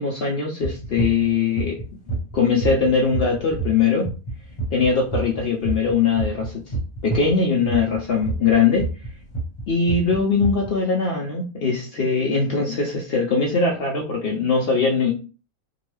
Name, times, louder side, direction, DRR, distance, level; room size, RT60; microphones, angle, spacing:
voice 1, 0.0-1.8 2.3-4.1 4.7-6.6 7.0-8.9 9.7-15.1, left 5 dB, 60° left, 0 dB, 0.6 m, -21 dB
sound 1, 0.6-7.3 7.6-10.7, right 4 dB, 25° left, 0.9 m, -27 dB
2.8 x 2.2 x 3.1 m, 0.33 s
omnidirectional pair, 1.4 m